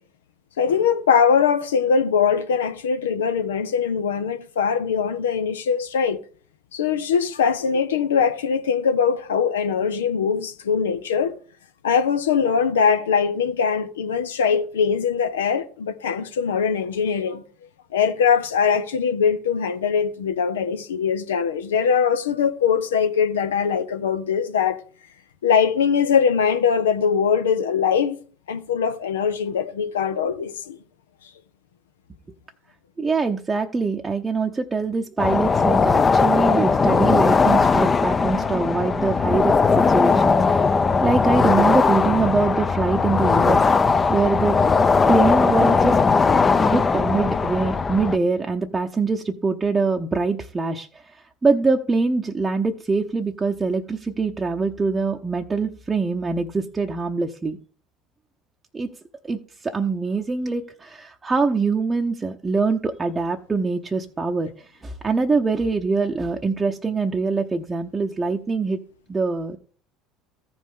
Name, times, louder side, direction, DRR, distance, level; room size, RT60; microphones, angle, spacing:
voice 1, 0.6-6.2 6.7-11.4 11.8-17.4 17.9-24.8 25.4-28.2 28.5-30.8, left 6 dB, 80° left, 0.6 m, -21 dB
voice 2, 33.0-43.7 44.1-44.6 45.1-46.0 46.6-57.6 58.7-58.9 59.2-68.8 69.1-69.6, right 4 dB, 20° right, 0.7 m, -24 dB
sound 1, 35.2-48.2, left 4 dB, 25° left, 0.6 m, -19 dB
15.0 x 5.2 x 3.6 m
hypercardioid pair, 65°, 0 cm